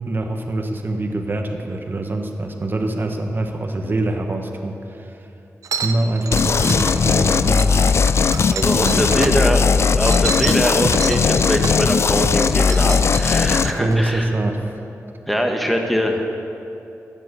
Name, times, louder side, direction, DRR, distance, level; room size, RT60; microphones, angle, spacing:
voice 1, 0.1-5.2 5.8-7.8 8.7-9.6 13.8-14.8, right 2 dB, 40° right, 4 dB, 1.4 m, -24 dB
sound 1, 5.6-9.4 9.8-11.9 12.3-14.1, right 5 dB, 75° right, 0.8 m, -30 dB
sound 2, 6.3-13.7, left 5 dB, 50° left, 0.4 m, -18 dB
voice 2, 8.5-9.7 10.0-14.3 15.3-16.3, equal, ahead, 2 dB, 1.3 m, -22 dB
15.0 x 10.5 x 6.9 m, 2.8 s
wide cardioid pair, 120°, 6 cm